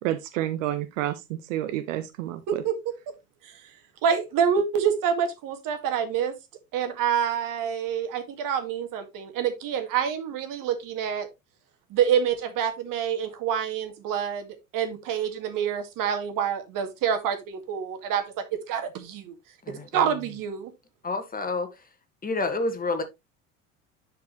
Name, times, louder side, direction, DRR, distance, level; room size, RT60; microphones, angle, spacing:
voice 1, 0.0-2.6, right 13 dB, 65° right, 1.0 m, -30 dB
voice 2, 2.5-3.1 3.4-3.6 4.0-6.3 6.7-11.3 11.9-14.5 14.7-19.3 19.7-20.7, right 8 dB, 50° right, 2.1 m, -27 dB
voice 3, 19.6-20.0 21.0-21.7 22.2-23.0, left 3 dB, 20° left, 1.8 m, -28 dB
10.5 x 5.0 x 3.1 m
figure-of-eight pair, 70°, 41 cm